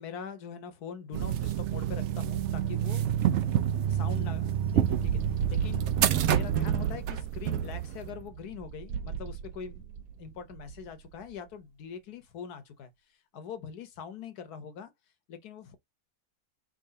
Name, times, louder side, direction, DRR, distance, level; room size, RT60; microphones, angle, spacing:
voice 1, 0.0-3.6 3.9-5.2 5.5-14.9 15.3-15.8, left 7 dB, 75° left, 1.4 m, -43 dB
sound 1, 1.1-7.2, right 10 dB, 65° right, 0.7 m, -28 dB
sound 2, 1.1-11.3, right 9 dB, 80° right, 1.2 m, -34 dB
4.7 x 3.7 x 2.7 m
omnidirectional pair, 1.7 m